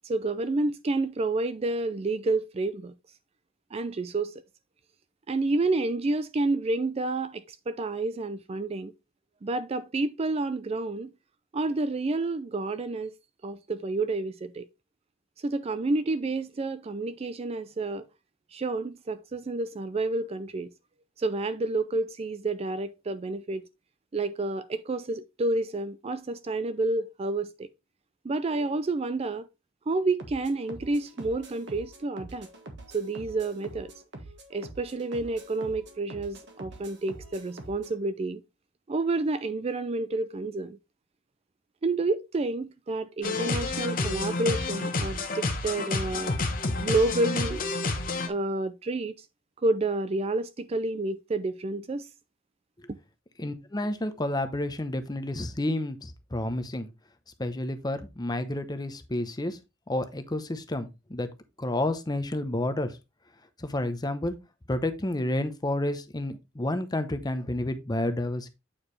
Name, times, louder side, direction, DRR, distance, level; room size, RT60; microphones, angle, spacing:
voice 1, 0.0-2.9 3.7-4.3 5.3-8.9 9.4-11.1 11.5-13.1 13.4-14.7 15.4-18.1 18.5-20.7 21.2-23.6 24.1-27.7 28.2-29.5 29.9-32.5 32.9-33.9 34.5-38.4 38.9-40.8 41.8-46.4 46.8-47.7 48.3-49.1 49.6-52.1 52.9-53.0, right 2 dB, 30° right, 0.4 m, -29 dB
sound 1, 30.2-38.0, right 2 dB, 60° right, 1.6 m, -45 dB
sound 2, 43.2-48.3, left 3 dB, 45° left, 1.1 m, -29 dB
voice 2, 53.4-56.9 57.4-59.6 59.9-61.3 61.6-63.0 63.6-64.4 64.7-68.5, left 1 dB, 20° left, 0.8 m, -30 dB
8.7 x 4.8 x 3.2 m
head